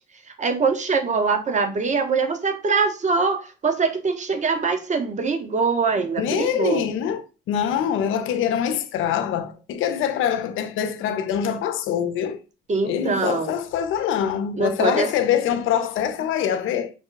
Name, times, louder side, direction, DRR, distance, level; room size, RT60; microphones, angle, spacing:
voice 1, 0.4-6.8 12.7-13.5 14.6-15.1, right 4 dB, 35° right, 0.9 m, -23 dB
voice 2, 6.0-12.4 12.8-16.9, left 9 dB, 90° left, 0.7 m, -24 dB
6.0 x 2.3 x 3.8 m
cardioid pair, 90°, 20 cm